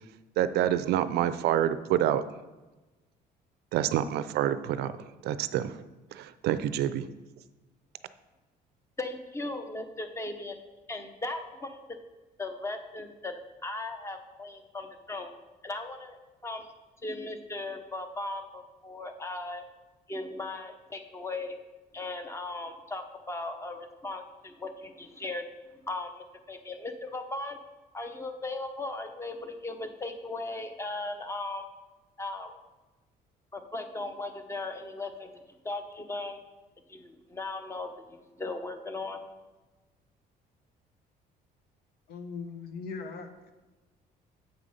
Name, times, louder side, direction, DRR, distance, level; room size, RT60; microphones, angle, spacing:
voice 1, 0.4-2.2 3.7-5.0 5.2-5.8 6.1-7.1, right 11 dB, 75° right, 13 dB, 0.5 m, -27 dB
voice 2, 9.0-10.6 10.9-12.0 12.4-13.3 13.6-15.3 15.6-16.2 16.4-16.7 17.0-19.6 20.1-21.6 21.9-25.4 25.9-27.6 27.9-31.6 32.2-32.5 33.5-35.3 35.6-36.4 36.9-39.2, left 2 dB, 15° left, 6 dB, 0.9 m, -37 dB
voice 3, 42.1-43.5, left 4 dB, 70° left, 7 dB, 1.0 m, -40 dB
7.9 x 4.9 x 5.5 m, 1.2 s
cardioid pair, 110°, 17 cm